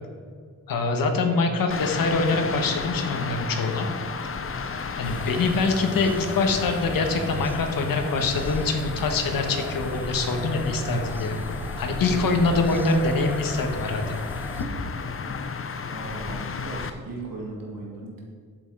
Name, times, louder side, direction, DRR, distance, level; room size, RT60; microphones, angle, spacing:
voice 1, 0.7-3.9 5.0-11.4 11.8-14.2 15.2-15.3, left 3 dB, 85° left, 4 dB, 1.5 m, -24 dB
sound 1, 1.7-16.9, left 5 dB, 40° left, 0.8 m, -33 dB
sound 2, 5.0-14.7, right 2 dB, 5° right, 0.6 m, -38 dB
voice 2, 15.9-18.2, right 2 dB, 85° right, -2 dB, 2.5 m, -38 dB
11.0 x 8.3 x 4.8 m, 2.1 s
wide cardioid pair, 130°, 33 cm